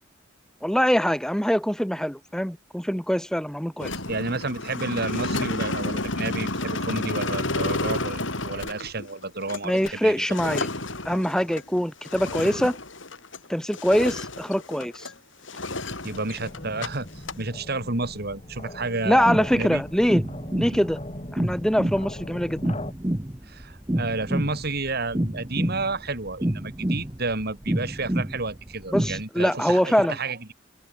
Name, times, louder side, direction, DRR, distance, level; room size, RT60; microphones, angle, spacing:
voice 1, 0.6-3.9 9.6-10.7 11.0-12.8 13.5-15.1 19.0-20.2 20.6-21.0 21.3-22.6 28.9-30.2, equal, 5° left, 2.6 m, -23 dB
sound 1, 3.8-13.5 13.7-15.1 15.5-16.9 17.1-17.4, left 2 dB, 75° left, 7.4 m, -31 dB
voice 2, 4.1-10.2 16.0-19.8 20.7-20.8 23.5-30.5, right 3 dB, 55° right, 3.8 m, -31 dB
sound 2, 16.0-22.9, left 1 dB, 35° left, 3.7 m, -39 dB
sound 3, 19.1-29.2, right 1 dB, 15° right, 1.0 m, -28 dB
open air
head